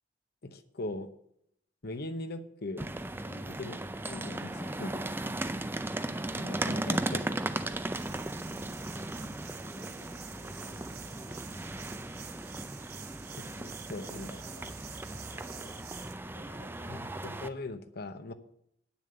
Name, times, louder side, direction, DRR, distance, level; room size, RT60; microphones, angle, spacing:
voice 1, 0.4-1.2 1.8-2.9 3.6-3.8 4.0-5.1 6.3-7.3 13.4-14.3 16.9-18.3, left 2 dB, 60° left, 9 dB, 1.0 m, -40 dB
sound 1, 2.8-17.5, right 1 dB, 10° right, 0.5 m, -37 dB
voice 2, 3.2-3.6 4.5-5.3 8.1-9.3 9.6-11.6 13.1-13.5 13.9-17.0, left 1 dB, 40° left, -2 dB, 3.8 m, -55 dB
sound 2, 7.9-16.1, right 9 dB, 60° right, 1.2 m, -49 dB
8.7 x 7.2 x 7.7 m, 0.74 s
head